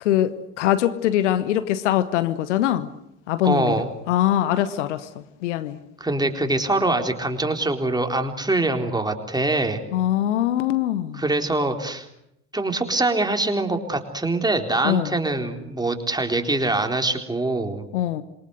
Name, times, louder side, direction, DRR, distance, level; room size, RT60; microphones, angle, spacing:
voice 1, 0.0-2.9 3.3-5.8 9.9-11.2 14.8-15.2 17.9-18.2, left 12 dB, 70° left, 1.3 m, -23 dB
voice 2, 3.4-3.9 6.0-9.8 11.1-12.1 12.5-17.9, right 2 dB, 10° right, 3.9 m, -24 dB
27.0 x 24.0 x 8.2 m
figure-of-eight pair, 60°, 37 cm